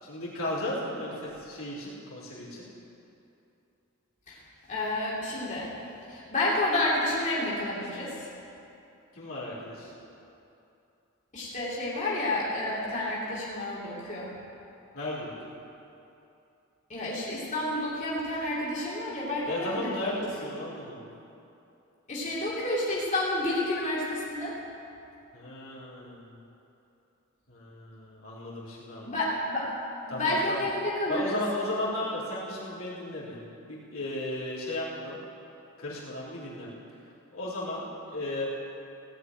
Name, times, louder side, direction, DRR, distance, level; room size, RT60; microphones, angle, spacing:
voice 1, 0.0-2.6 9.1-9.9 14.9-15.3 19.5-21.1 25.3-26.3 27.5-29.2 30.1-30.6 31.1-33.4 33.7-35.2 35.8-36.7 37.3-38.5, left 1 dB, 70° left, -8 dB, 3.5 m, -35 dB
voice 2, 4.7-5.7 6.1-8.2 11.3-14.3 16.9-20.1 22.1-24.5 29.0-29.7 30.0-31.4, left 1 dB, 35° left, -8 dB, 3.0 m, -30 dB
17.0 x 5.8 x 9.2 m, 2.8 s
head